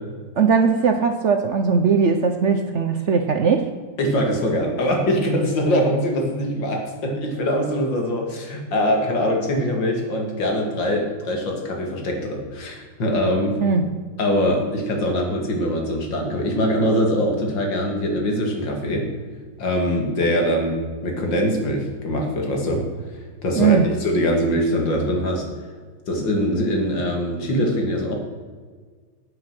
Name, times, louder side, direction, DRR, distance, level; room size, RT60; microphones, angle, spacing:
voice 1, 0.4-3.7 13.6-14.0 23.6-23.8, right 5 dB, 60° right, 7 dB, 0.7 m, -19 dB
voice 2, 4.0-13.6 14.2-19.1 19.6-22.8 23.1-25.4 26.1-28.2, equal, 90° left, 1 dB, 2.8 m, -23 dB
9.3 x 8.9 x 6.2 m, 1.5 s
omnidirectional pair, 1.9 m